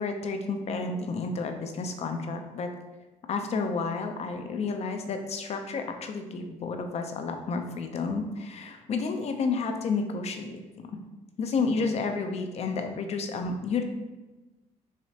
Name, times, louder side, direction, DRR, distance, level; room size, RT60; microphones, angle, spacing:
voice 1, 0.0-2.7 3.3-10.9 11.4-13.8, left 4 dB, 50° left, 5 dB, 0.6 m, -31 dB
4.9 x 3.0 x 2.8 m, 1.1 s
cardioid pair, 95°, 14 cm